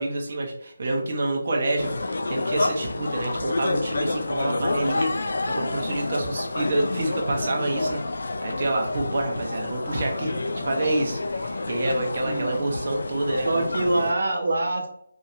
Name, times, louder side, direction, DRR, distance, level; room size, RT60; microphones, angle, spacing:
voice 1, 0.0-13.6, right 1 dB, 40° right, 0 dB, 0.9 m, -28 dB
sound 1, 1.8-14.1, left 2 dB, 65° left, 0.4 m, -29 dB
voice 2, 12.3-12.6 13.4-14.9, right 2 dB, 70° right, 2 dB, 1.0 m, -25 dB
4.2 x 2.7 x 2.5 m, 0.68 s
figure-of-eight pair, 170°, 0 cm